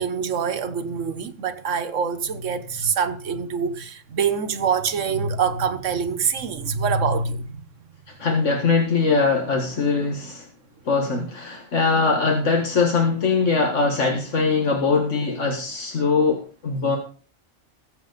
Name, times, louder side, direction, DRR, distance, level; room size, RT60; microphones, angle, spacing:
voice 1, 0.0-7.6, right 6 dB, 90° right, 1.4 m, -25 dB
voice 2, 8.2-10.5 10.9-17.0, left 4 dB, 80° left, 2.1 m, -21 dB
20.5 x 7.6 x 4.1 m
omnidirectional pair, 1.2 m